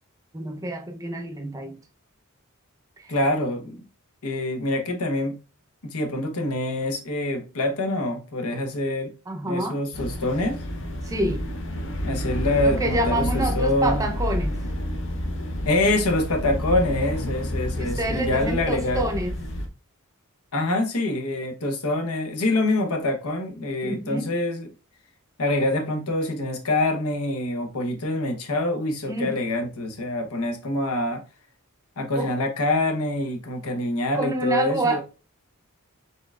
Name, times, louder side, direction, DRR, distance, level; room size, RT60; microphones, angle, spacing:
voice 1, 0.3-1.8 3.0-3.2 9.3-9.8 11.0-11.4 12.6-14.6 17.8-19.3 23.8-24.3 29.0-29.4 32.1-32.3 34.1-35.0, right 1 dB, 15° right, 0.5 m, -28 dB
voice 2, 3.1-3.8 4.2-5.4 5.8-9.1 9.4-10.6 12.0-14.0 15.6-19.1 20.5-24.7 25.4-31.2 32.0-35.0, left 1 dB, 80° left, 0.9 m, -25 dB
sound 1, 9.9-19.7, equal, 55° left, 0.6 m, -29 dB
4.3 x 3.8 x 2.3 m
head